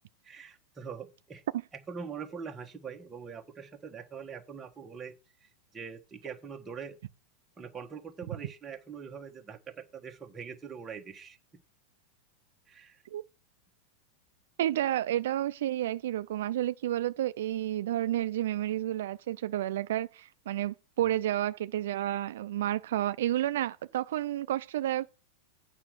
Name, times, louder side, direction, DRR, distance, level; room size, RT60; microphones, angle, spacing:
voice 1, 0.2-1.4 1.9-5.1 5.4-7.0 7.6-11.4 12.7-13.0, right 6 dB, 15° right, 1.1 m, -43 dB
voice 2, 14.6-25.1, right 13 dB, 70° right, 0.4 m, -30 dB
8.8 x 4.9 x 6.1 m
supercardioid pair, 165°, 0 cm